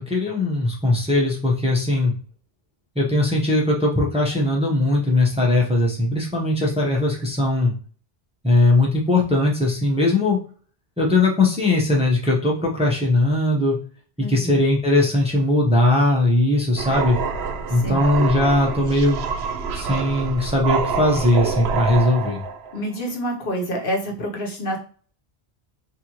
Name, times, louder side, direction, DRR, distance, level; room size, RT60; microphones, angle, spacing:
voice 1, 0.0-2.1 3.0-7.7 8.4-10.4 11.0-13.8 14.3-17.2 17.7-19.2 19.7-22.4, left 2 dB, 5° right, -2 dB, 0.8 m, -19 dB
voice 2, 14.2-14.6 17.7-18.0 22.7-24.8, equal, 60° left, 0 dB, 1.0 m, -27 dB
sound 1, 16.8-22.8, right 5 dB, 85° right, 0.8 m, -27 dB
4.2 x 2.6 x 2.9 m, 0.42 s
omnidirectional pair, 1.0 m